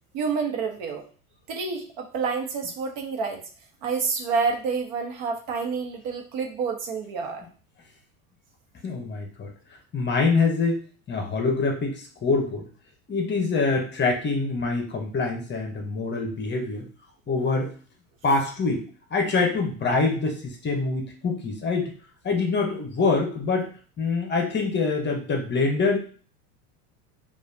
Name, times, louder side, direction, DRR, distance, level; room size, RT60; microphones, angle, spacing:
voice 1, 0.1-1.0 1.5-3.4 3.8-7.4, right 5 dB, 55° right, 3 dB, 1.0 m, -28 dB
voice 2, 8.8-9.5 9.9-12.7 13.1-16.8 17.3-17.7 18.2-18.8 19.1-21.9 22.2-23.7 24.0-26.0, left 4 dB, 25° left, 2 dB, 0.8 m, -25 dB
4.8 x 2.5 x 2.7 m, 0.40 s
supercardioid pair, 110°, 43 cm